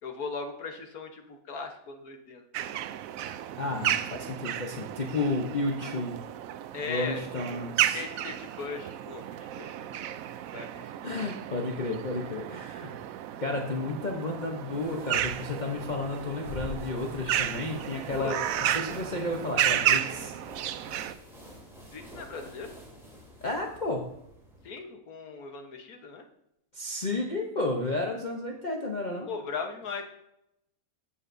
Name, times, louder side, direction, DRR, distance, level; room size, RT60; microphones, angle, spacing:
voice 1, 0.0-2.4 6.7-7.2 7.5-10.0 10.5-10.9 18.2-18.4 21.9-22.7 24.6-26.2 29.3-30.0, left 4 dB, 80° left, 4 dB, 1.6 m, -38 dB
sound 1, 2.5-21.1, right 11 dB, 75° right, 1.0 m, -33 dB
voice 2, 3.6-6.2 6.9-8.0 11.0-13.0 13.4-18.4 18.7-20.3 23.4-24.1 26.7-29.3, left 2 dB, 35° left, 0 dB, 0.9 m, -32 dB
sound 2, 14.7-24.7, left 1 dB, ahead, 2.4 m, -46 dB
13.5 x 6.9 x 2.7 m, 0.81 s
omnidirectional pair, 1.5 m